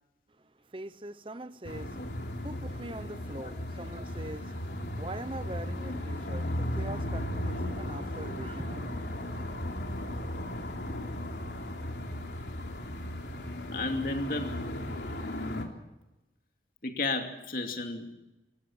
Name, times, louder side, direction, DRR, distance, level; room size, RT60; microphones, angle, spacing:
voice 1, 0.7-8.9, right 2 dB, 30° right, 0.8 m, -43 dB
sound 1, 1.6-15.6, left 1 dB, 75° left, 3.3 m, -36 dB
voice 2, 13.7-14.6 16.8-18.1, left 2 dB, 50° left, 2.6 m, -33 dB
27.0 x 15.5 x 7.3 m
head